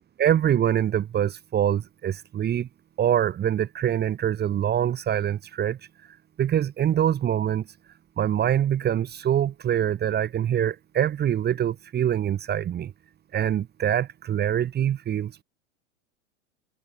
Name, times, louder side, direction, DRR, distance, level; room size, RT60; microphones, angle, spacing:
voice 1, 0.0-2.7 3.0-5.8 6.4-7.6 8.2-12.9 13.3-15.4, right 10 dB, 25° right, 2.1 m, -24 dB
hypercardioid pair, 105°, 36 cm